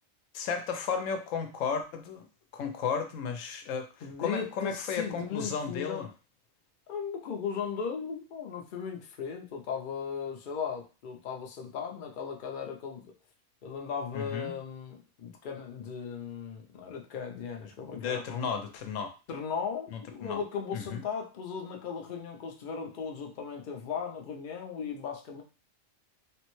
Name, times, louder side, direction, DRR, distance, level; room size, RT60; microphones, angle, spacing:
voice 1, 0.3-2.2 2.5-3.9 4.2-6.1 14.1-14.5 17.9-19.1 19.9-20.4 20.7-21.0, left 6 dB, 75° left, 1.0 m, -34 dB
voice 2, 4.0-6.1 6.9-13.1 13.6-18.4 19.3-25.4, left 6 dB, 55° left, 0.6 m, -37 dB
3.3 x 2.1 x 3.0 m
omnidirectional pair, 1.3 m